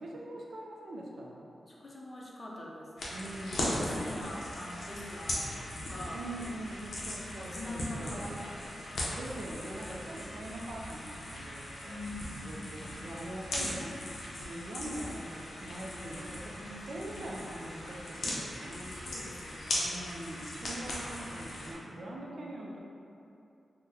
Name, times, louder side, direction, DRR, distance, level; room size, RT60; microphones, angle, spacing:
voice 1, 0.0-1.5 3.1-4.0 6.1-8.3 9.1-12.0 12.4-14.1 14.4-19.0 19.8-22.8, right 1 dB, 65° right, -2 dB, 0.4 m, -43 dB
voice 2, 1.7-2.9 3.8-6.2 7.4-8.9 11.8-12.9 16.6-17.5 18.9-20.1 21.8-22.5, left 1 dB, 35° left, -4 dB, 0.5 m, -45 dB
sound 1, 3.0-21.7, left 1 dB, 85° left, 0.6 m, -39 dB
3.7 x 2.1 x 2.7 m, 2.7 s
wide cardioid pair, 105°, 0 cm